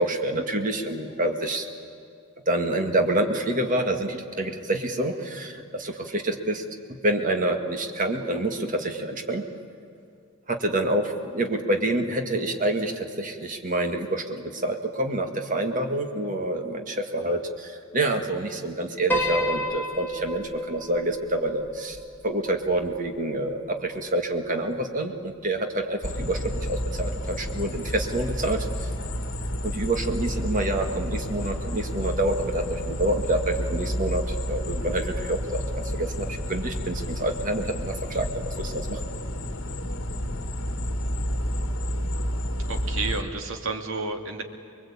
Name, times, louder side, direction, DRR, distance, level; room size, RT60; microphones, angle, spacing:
voice 1, 0.0-1.6 2.5-6.6 7.0-9.4 10.5-22.0 22.2-28.7 29.6-35.6 35.9-39.0, right 1 dB, 40° right, 4 dB, 2.0 m, -27 dB
Piano, 19.1-23.5, equal, 10° left, 2.1 m, -31 dB
sound 1, 26.0-43.2, equal, 60° left, 1.6 m, -30 dB
voice 2, 42.7-44.4, right 3 dB, 70° right, 4 dB, 2.3 m, -31 dB
25.0 x 22.0 x 8.7 m, 2.4 s
head